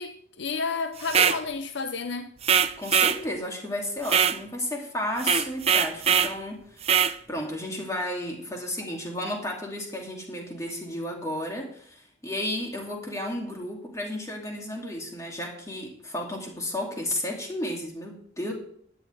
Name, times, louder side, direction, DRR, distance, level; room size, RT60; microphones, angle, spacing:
voice 1, 0.0-2.3, left 4 dB, 70° left, 0.6 m, -31 dB
sound 1, 1.0-1.4 2.4-3.2 4.1-4.4 5.2-6.3 6.8-7.2, right 7 dB, 35° right, 0.5 m, -22 dB
voice 2, 2.8-6.9 7.3-18.5, left 1 dB, 15° left, 2.6 m, -33 dB
13.0 x 10.5 x 3.4 m
head